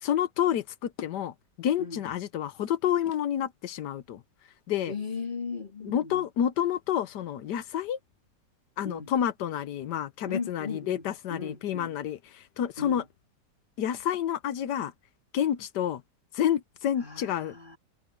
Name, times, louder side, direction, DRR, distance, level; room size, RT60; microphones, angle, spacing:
voice 1, 0.0-4.2 4.7-4.9 5.8-8.0 8.8-13.0 13.8-14.9 15.3-16.0 16.3-17.6, left 10 dB, 75° left, 1.5 m, -29 dB
voice 2, 4.9-6.3 8.8-9.1 10.3-11.9 12.8-13.0 17.0-17.8, left 4 dB, 30° left, 3.1 m, -37 dB
omnidirectional pair, 1.8 m